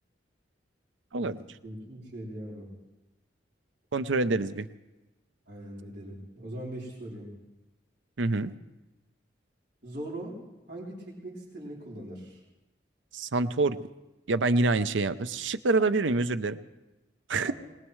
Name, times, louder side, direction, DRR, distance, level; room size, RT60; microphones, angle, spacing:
voice 1, 1.6-2.7 5.5-7.3 9.8-10.4 10.7-12.4 17.4-17.5, right 1 dB, 55° right, -8 dB, 3.7 m, -40 dB
voice 2, 3.9-4.7 8.2-8.5 13.1-13.8 14.3-16.6 17.3-17.5, right 3 dB, 90° right, 12 dB, 0.6 m, -26 dB
22.0 x 20.0 x 3.2 m, 1.0 s
head